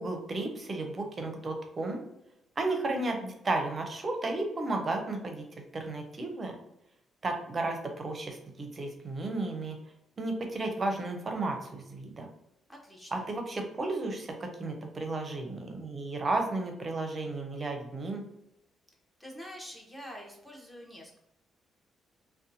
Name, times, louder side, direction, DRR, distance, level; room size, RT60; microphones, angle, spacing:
voice 1, 0.0-2.0 2.6-5.4 5.7-6.6 7.2-9.8 10.2-12.3 13.1-18.2, right 2 dB, 35° right, 4 dB, 0.6 m, -33 dB
voice 2, 12.7-13.3 19.2-21.2, equal, 10° left, -1 dB, 0.8 m, -46 dB
2.7 x 2.2 x 2.6 m, 0.85 s
cardioid pair, 90°, 0 cm